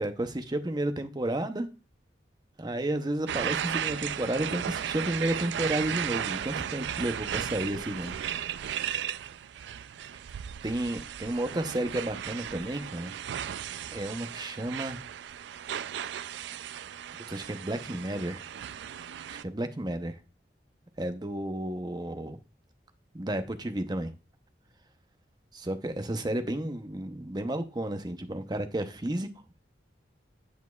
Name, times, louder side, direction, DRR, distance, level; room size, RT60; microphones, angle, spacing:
voice 1, 0.0-1.7 2.6-8.2 10.6-13.1 13.9-15.0 17.3-18.4 19.3-20.2 21.0-22.4 23.1-24.1 25.5-29.3, right 1 dB, 25° right, 0.7 m, -32 dB
sound 1, 3.3-19.4, right 9 dB, 75° right, 0.3 m, -35 dB
8.3 x 7.0 x 2.3 m
head